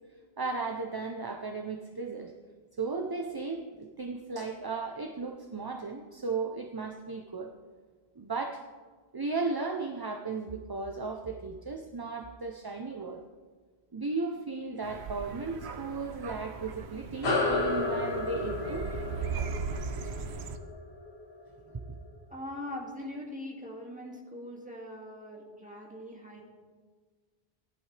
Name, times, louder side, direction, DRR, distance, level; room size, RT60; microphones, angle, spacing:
voice 1, 0.4-2.3 2.8-7.5 8.2-8.6 9.1-13.2 13.9-18.9 19.3-19.5 21.7-21.8, right 4 dB, 25° right, 3 dB, 0.6 m, -35 dB
sound 1, 14.8-20.6, right 5 dB, 90° right, 1.0 m, -38 dB
sound 2, 17.2-22.1, left 2 dB, 80° left, 1.9 m, -32 dB
voice 2, 22.3-26.4, left 1 dB, 5° right, -2 dB, 2.2 m, -41 dB
16.0 x 11.0 x 3.3 m, 1.5 s
omnidirectional pair, 1.1 m